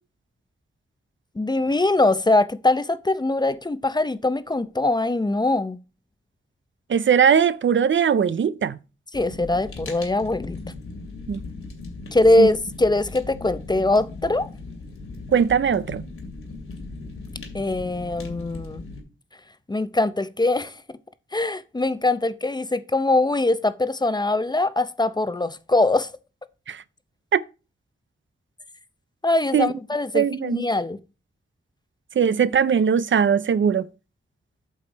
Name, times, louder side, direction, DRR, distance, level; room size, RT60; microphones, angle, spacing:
voice 1, 1.4-5.8 9.1-10.6 12.1-14.5 17.5-18.9 19.7-20.8 21.3-26.1 29.2-31.0, left 2 dB, 20° left, 0.6 m, -22 dB
voice 2, 6.9-8.8 11.3-11.4 12.4-12.5 15.3-16.0 26.7-26.8 27.3-27.4 29.5-29.7 30.1-30.6 32.2-33.9, right 7 dB, 65° right, 0.5 m, -20 dB
Fire, 9.1-19.0, left 3 dB, 85° left, 2.5 m, -38 dB
8.5 x 6.5 x 4.0 m
wide cardioid pair, 125°, 21 cm